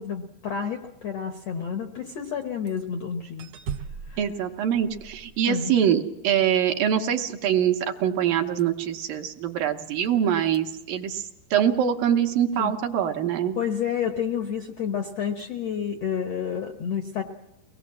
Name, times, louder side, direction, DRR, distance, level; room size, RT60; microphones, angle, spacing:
voice 1, 0.0-3.5 4.1-4.2 5.5-5.8 12.6-12.7 13.6-17.2, left 7 dB, 70° left, 6 dB, 1.5 m, -30 dB
sound 1, 2.4-2.9 3.4-5.8 8.6-8.9 9.8-10.1 10.4-10.6 15.4-15.5, right 6 dB, 85° right, 1.4 m, -39 dB
voice 2, 4.2-13.6, right 9 dB, 70° right, 4 dB, 2.5 m, -24 dB
23.5 x 19.5 x 7.5 m, 0.88 s
omnidirectional pair, 4.6 m